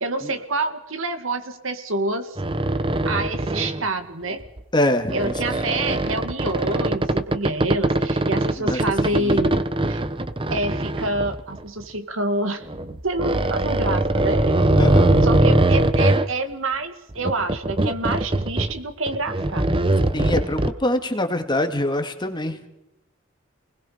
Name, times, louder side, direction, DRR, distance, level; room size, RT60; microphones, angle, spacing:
voice 1, 0.0-2.4 3.0-4.4 5.1-10.0 10.5-12.7 13.0-14.4 15.2-19.9, right 2 dB, 80° right, 8 dB, 2.1 m, -27 dB
sound 1, 2.4-3.9 4.3-4.6 5.1-11.8 12.7-16.3 17.1-18.8 19.1-20.7, right 1 dB, 25° right, 0.9 m, -21 dB
voice 2, 4.7-5.3 8.6-8.8 9.1-9.6 14.8-15.2 20.1-22.7, left 1 dB, 25° left, 6 dB, 2.1 m, -24 dB
29.5 x 20.0 x 5.1 m, 0.87 s
head